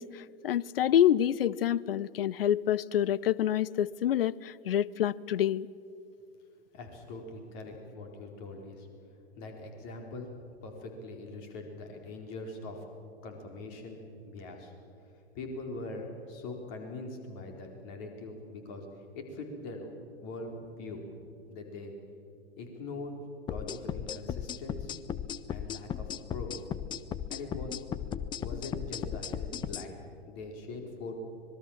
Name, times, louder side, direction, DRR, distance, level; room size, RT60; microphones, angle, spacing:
voice 1, 0.0-5.7, left 11 dB, 60° left, 22 dB, 0.7 m, -27 dB
voice 2, 6.7-8.9 9.4-10.3 10.6-12.8 13.2-14.7 15.3-18.9 19.1-21.1 21.5-21.9 22.6-23.1 23.5-24.9 25.5-26.6 27.3-27.8 28.4-31.2, left 2 dB, 40° left, 3 dB, 4.3 m, -42 dB
sound 1, 23.5-29.9, left 9 dB, 15° left, 0.6 m, -36 dB
25.5 x 21.0 x 7.3 m, 2.6 s
figure-of-eight pair, 95°, 33 cm